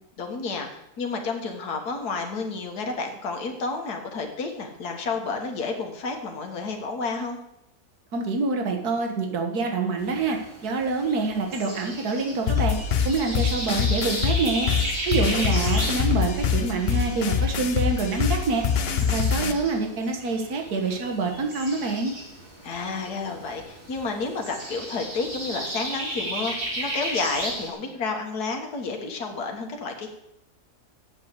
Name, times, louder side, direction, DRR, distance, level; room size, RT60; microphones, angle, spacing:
voice 1, 0.2-7.4 15.3-15.6 22.6-30.1, left 4 dB, 75° left, 2 dB, 2.0 m, -31 dB
voice 2, 8.1-12.8 13.1-14.7 15.1-18.7 19.1-22.1, right 3 dB, 75° right, 3 dB, 2.0 m, -26 dB
sound 1, 10.0-27.7, right 1 dB, 40° right, 2.6 m, -35 dB
sound 2, 12.5-19.5, left 7 dB, 50° left, 0.9 m, -24 dB
8.0 x 8.0 x 8.1 m, 0.85 s
omnidirectional pair, 1.7 m